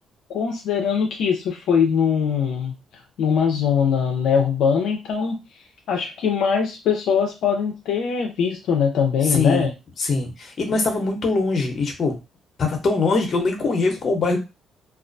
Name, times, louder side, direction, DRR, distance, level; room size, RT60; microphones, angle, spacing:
voice 1, 0.3-5.4 5.9-9.7, left 7 dB, 80° left, 2 dB, 0.4 m, -22 dB
voice 2, 9.3-9.7 10.0-12.2 12.6-14.4, left 3 dB, 50° left, 3 dB, 0.8 m, -22 dB
2.3 x 2.1 x 2.5 m, 0.26 s
cardioid pair, 90°, 0 cm